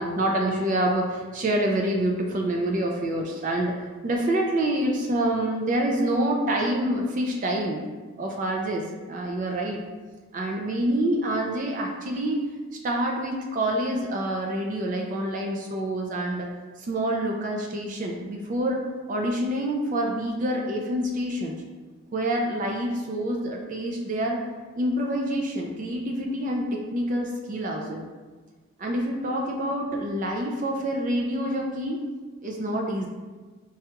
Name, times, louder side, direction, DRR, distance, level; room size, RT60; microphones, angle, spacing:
voice 1, 0.0-7.8 8.2-9.8 10.3-12.4 12.8-16.5 16.8-21.6 22.1-24.4 24.8-28.0 28.8-32.0 32.4-33.1, right 1 dB, 35° right, 1 dB, 0.3 m, -27 dB
4.6 x 2.3 x 2.8 m, 1.4 s
head